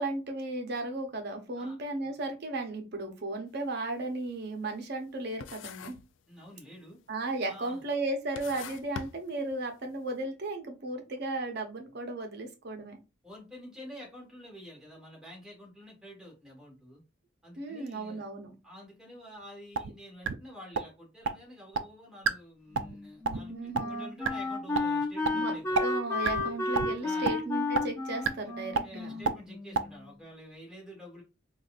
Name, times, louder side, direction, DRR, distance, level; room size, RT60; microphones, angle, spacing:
voice 1, 0.0-6.0 7.1-13.0 17.6-18.5 23.5-24.0 25.3-25.5 25.8-29.2, right 2 dB, 55° right, 4 dB, 0.7 m, -35 dB
sound 1, 3.5-3.7 4.1-5.1 5.4-6.2 6.4-7.0 7.6-7.7 8.2-9.9, left 7 dB, 70° left, 0.3 m, -44 dB
voice 2, 6.3-7.0 7.5-7.8 13.2-17.0 17.4-18.3 18.6-25.8 27.0-27.3 28.8-31.2, equal, 5° right, -3 dB, 1.3 m, -49 dB
sound 2, 19.8-19.9 20.2-20.3 20.7-20.8 21.2-21.3 21.7-21.8 22.2-22.3 22.7-22.9 23.2-23.4 23.7-23.8 24.2-24.3 24.7-24.8 25.2-25.3 25.7-25.8 26.2-26.4 26.7-26.9 27.2-27.3 27.7-27.8 28.2-28.3 28.7-28.8 29.2-29.3 29.7-29.8, right 5 dB, 75° right, 0.3 m, -26 dB
Wind instrument woodwind instrument, 22.7-30.0, left 2 dB, 15° left, 0.6 m, -33 dB
3.8 x 2.4 x 2.4 m, 0.28 s
head